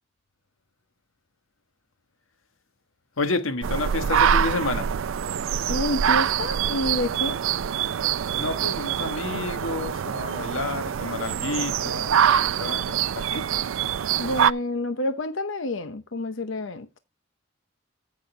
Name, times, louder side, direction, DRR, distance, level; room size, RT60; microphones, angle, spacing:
voice 1, 3.2-4.9 8.4-13.5, left 3 dB, 85° left, 1.4 m, -30 dB
sound 1, 3.6-14.5, right 8 dB, 80° right, 0.4 m, -25 dB
voice 2, 5.7-7.4 14.2-16.9, left 1 dB, 70° left, 0.8 m, -28 dB
14.0 x 6.4 x 3.3 m
head